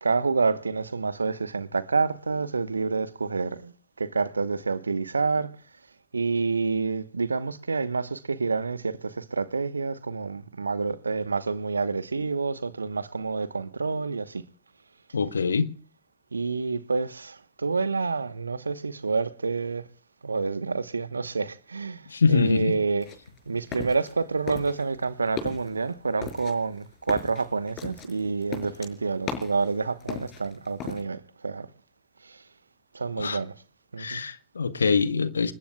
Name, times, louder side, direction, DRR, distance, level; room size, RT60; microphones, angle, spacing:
voice 1, 0.0-5.5 6.1-14.4 16.3-19.9 20.2-23.1 23.5-31.7 32.2-32.4 32.9-33.5 33.9-34.2, right 4 dB, 85° right, 1.0 m, -28 dB
voice 2, 15.1-15.7 22.1-22.7 33.2-33.4 34.0-35.5, left 5 dB, 80° left, 1.0 m, -24 dB
sound 1, 23.0-24.2 24.5-25.0 25.3-25.7 26.2-29.7 30.0-31.0, left 7 dB, 40° left, 5.2 m, -36 dB
28.5 x 20.0 x 2.3 m
figure-of-eight pair, 85°, 0 cm